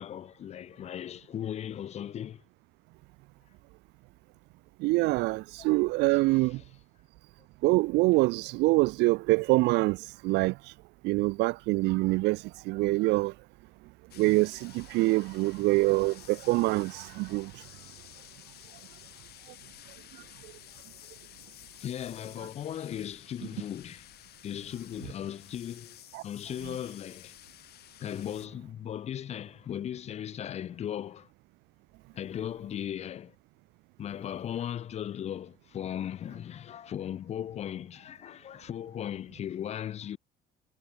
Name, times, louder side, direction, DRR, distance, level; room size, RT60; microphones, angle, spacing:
voice 1, 0.0-2.4 5.6-6.6 21.8-24.1 24.4-26.0 26.2-27.3 28.0-31.3 32.1-33.3 34.0-40.2, left 10 dB, 40° left, 0.4 m, -37 dB
voice 2, 4.8-6.6 7.6-10.0 10.2-10.5 11.0-12.4 12.7-13.3 14.2-17.5 26.1-26.2, right 22 dB, 85° right, 0.4 m, -25 dB
sound 1, 14.1-28.5, left 14 dB, 70° left, 3.4 m, -52 dB
cardioid pair, 110°, 17 cm